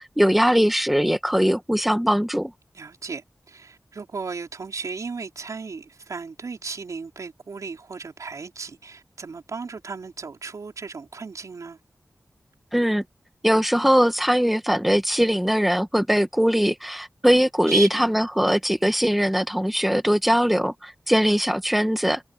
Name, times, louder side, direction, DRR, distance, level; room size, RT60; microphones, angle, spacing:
voice 1, 0.2-2.5 12.7-13.0 13.4-22.2, equal, ahead, 1.5 m, -21 dB
voice 2, 2.7-11.8 17.7-18.1, right 4 dB, 80° right, 4.9 m, -35 dB
wide cardioid pair, 95°, 6 cm